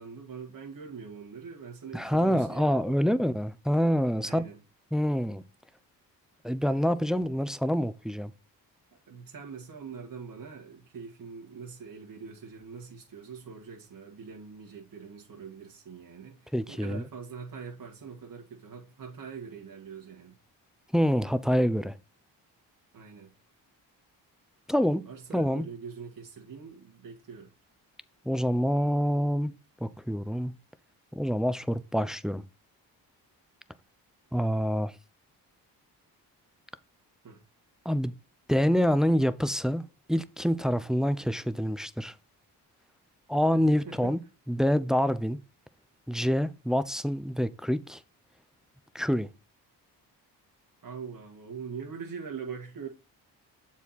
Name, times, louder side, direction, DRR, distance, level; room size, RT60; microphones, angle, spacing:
voice 1, 0.0-3.0 4.2-4.6 6.6-6.9 9.1-20.4 22.9-23.3 25.1-27.5 37.2-37.4 43.9-44.2 50.8-52.9, right 6 dB, 50° right, 1.8 m, -43 dB
voice 2, 1.9-4.4 4.9-5.4 6.4-8.3 16.5-17.0 20.9-22.0 24.7-25.1 25.3-25.7 28.3-29.5 29.8-30.5 31.1-32.4 34.3-34.9 37.8-38.1 38.5-42.1 43.3-44.2 44.5-45.4 46.1-48.0 48.9-49.3, equal, ahead, 0.5 m, -26 dB
7.1 x 4.4 x 4.0 m
supercardioid pair, 55°, 44 cm